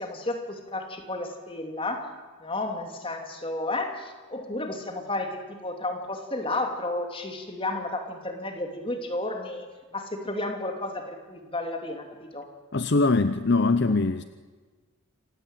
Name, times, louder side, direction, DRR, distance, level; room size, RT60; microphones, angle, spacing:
voice 1, 0.0-2.1 2.4-9.7 9.9-12.5, left 2 dB, 25° left, 4 dB, 2.9 m, -32 dB
voice 2, 12.7-14.2, left 3 dB, 50° left, 12 dB, 0.7 m, -22 dB
27.0 x 16.5 x 9.1 m, 1.4 s
head